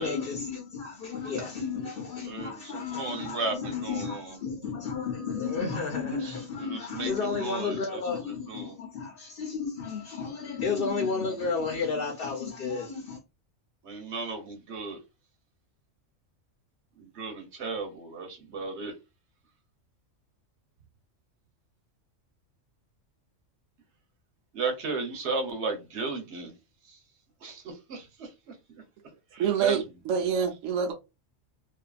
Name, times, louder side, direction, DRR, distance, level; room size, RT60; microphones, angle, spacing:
voice 1, 0.0-13.2, left 5 dB, 55° left, 0.8 m, -32 dB
voice 2, 2.3-4.3 6.2-6.3 6.6-8.0 8.5-8.7 13.8-15.0 17.0-18.9 24.5-26.5 26.9-27.0 27.4-28.3 29.3-29.8, right 3 dB, 65° right, 1.0 m, -35 dB
voice 3, 29.4-30.9, right 7 dB, 85° right, 1.0 m, -26 dB
2.6 x 2.5 x 2.3 m
omnidirectional pair, 1.3 m